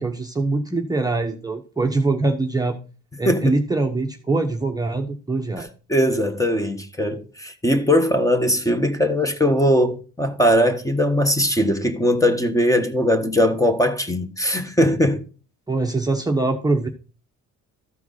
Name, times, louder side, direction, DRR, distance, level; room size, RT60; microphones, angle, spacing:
voice 1, 0.0-2.8 3.2-5.7 15.7-16.9, right 3 dB, 10° right, 1.0 m, -23 dB
voice 2, 3.2-3.6 5.9-15.2, equal, 10° left, 1.3 m, -20 dB
14.0 x 4.6 x 3.9 m
cardioid pair, 90°, 30 cm